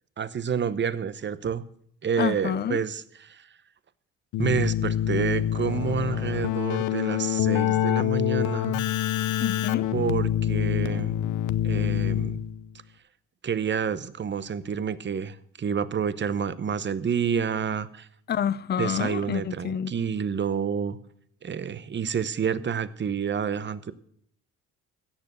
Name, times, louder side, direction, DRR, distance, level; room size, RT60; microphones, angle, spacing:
voice 1, 0.2-1.6 2.0-3.5 4.4-8.8 9.9-11.1 11.6-12.4 13.4-18.1 18.8-21.0 21.4-23.9, right 7 dB, 40° right, 16 dB, 0.8 m, -29 dB
voice 2, 2.2-2.8 9.4-9.9 18.3-19.9, left 9 dB, 35° left, 20 dB, 0.5 m, -28 dB
Keyboard (musical), 4.3-12.7, left 11 dB, 80° left, 0.7 m, -26 dB
16.5 x 6.9 x 6.7 m, 0.67 s
cardioid pair, 90°, 30 cm